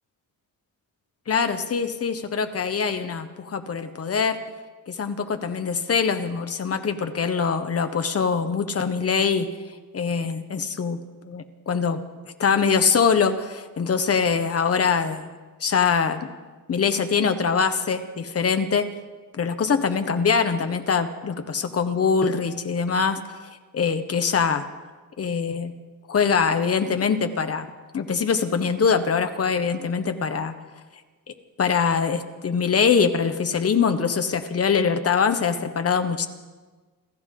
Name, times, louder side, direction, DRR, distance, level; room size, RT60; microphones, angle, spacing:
voice 1, 1.3-4.4 4.9-9.5 9.9-11.0 11.2-12.0 12.4-15.3 15.6-16.3 16.7-18.9 19.4-23.4 23.7-24.7 25.2-25.7 26.1-27.7 27.9-30.5 31.3-36.3, left 6 dB, 40° left, 8 dB, 1.1 m, -23 dB
27.0 x 14.0 x 3.8 m, 1.3 s
wide cardioid pair, 170°, 36 cm